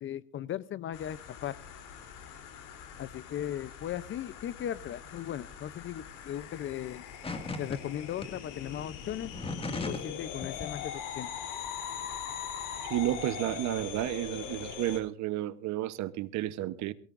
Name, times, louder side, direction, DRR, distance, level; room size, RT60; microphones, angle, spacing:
voice 1, 0.0-1.5 3.0-7.0 7.6-9.3 9.8-11.3, left 11 dB, 35° left, 18 dB, 0.6 m, -37 dB
sound 1, 0.9-15.0, left 8 dB, 60° left, 3.5 m, -42 dB
sound 2, 7.2-7.8 8.2-8.3 9.2-10.1 10.4-10.7, left 3 dB, 15° left, 2.0 m, -36 dB
voice 2, 12.9-16.9, right 14 dB, 50° right, 14 dB, 1.1 m, -32 dB
23.0 x 18.0 x 2.6 m, 0.39 s
cardioid pair, 130°, 35 cm